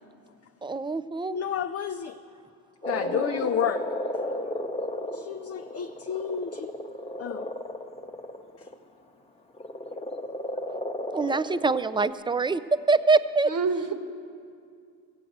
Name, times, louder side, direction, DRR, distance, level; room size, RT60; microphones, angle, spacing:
voice 1, 0.6-1.4 11.1-12.6 12.9-13.5, right 4 dB, 15° right, 14 dB, 0.4 m, -24 dB
voice 2, 1.3-2.2 2.9-3.8 5.1-6.7 7.2-7.5 8.6-8.7, left 8 dB, 40° left, 6 dB, 0.5 m, -31 dB
Frog, 2.8-8.7 9.6-12.1, left 1 dB, 15° left, 0.8 m, -34 dB
voice 3, 2.9-3.5 13.4-13.9, right 4 dB, 55° right, 6 dB, 1.5 m, -30 dB
16.0 x 7.7 x 7.9 m, 2.2 s
cardioid pair, 85°, 39 cm